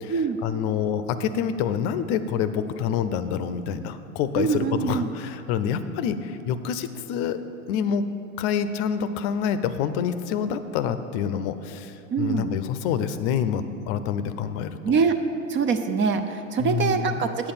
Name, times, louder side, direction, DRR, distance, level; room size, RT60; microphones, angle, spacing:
voice 1, 0.0-7.4 7.7-15.0 16.6-17.2, left 8 dB, 55° left, 12 dB, 0.6 m, -27 dB
voice 2, 4.3-5.1 12.1-12.5 14.8-15.2 15.5-17.5, right 5 dB, 30° right, 8 dB, 0.5 m, -24 dB
8.7 x 6.9 x 5.7 m, 2.7 s
hypercardioid pair, 95°, 42 cm